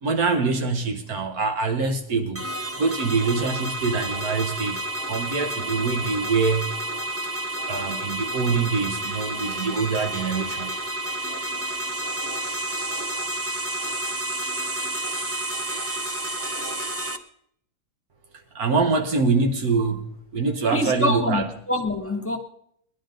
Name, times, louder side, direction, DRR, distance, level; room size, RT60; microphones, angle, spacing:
voice 1, 0.0-2.5 2.8-6.6 7.7-10.8 18.5-20.0 20.3-21.5, right 4 dB, 80° right, 1.6 m, -24 dB
sound 1, 2.3-17.2, right 1 dB, 20° right, 0.4 m, -30 dB
voice 2, 20.7-22.4, left 1 dB, 10° left, 1.5 m, -25 dB
19.5 x 11.0 x 3.8 m
omnidirectional pair, 1.6 m